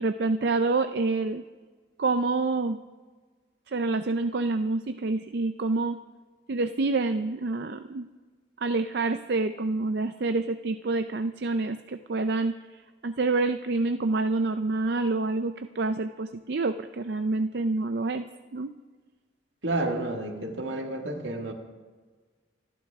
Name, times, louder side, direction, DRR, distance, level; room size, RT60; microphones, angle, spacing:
voice 1, 0.0-1.4 2.0-2.8 3.7-6.0 6.5-8.1 8.6-12.5 13.0-18.2 18.5-18.7, right 3 dB, 60° right, 9 dB, 0.5 m, -27 dB
voice 2, 19.6-21.5, right 2 dB, 80° right, 3 dB, 1.9 m, -30 dB
27.0 x 12.0 x 3.5 m, 1.4 s
head